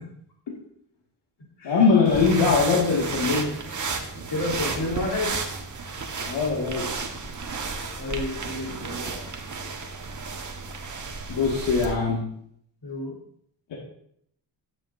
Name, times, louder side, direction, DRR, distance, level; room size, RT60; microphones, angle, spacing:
voice 1, 1.6-3.5 6.2-7.0 11.3-12.3, left 4 dB, 85° left, -4 dB, 2.2 m, -21 dB
sound 1, 2.0-12.0, right 4 dB, 45° right, 1.4 m, -33 dB
voice 2, 4.3-5.4 8.0-9.3 12.8-13.1, left 2 dB, 65° left, -2 dB, 3.9 m, -30 dB
12.5 x 9.7 x 2.7 m, 0.67 s
cardioid pair, 80°, 43 cm